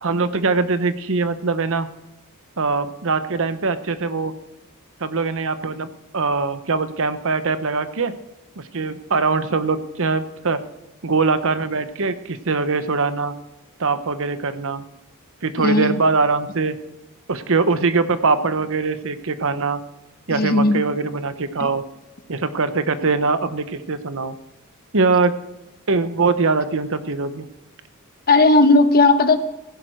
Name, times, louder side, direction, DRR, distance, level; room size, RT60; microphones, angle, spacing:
voice 1, 0.0-1.9 2.6-4.3 5.0-8.1 8.6-10.6 11.0-13.3 13.8-14.8 15.4-16.7 17.3-19.8 20.3-21.8 22.3-24.4 24.9-25.3 25.9-27.5, right 4 dB, 60° right, 11 dB, 1.0 m, -22 dB
voice 2, 15.6-16.0 20.3-20.9 21.6-21.7 28.3-29.4, left 2 dB, 45° left, 9 dB, 1.1 m, -16 dB
16.0 x 10.5 x 4.6 m, 0.97 s
head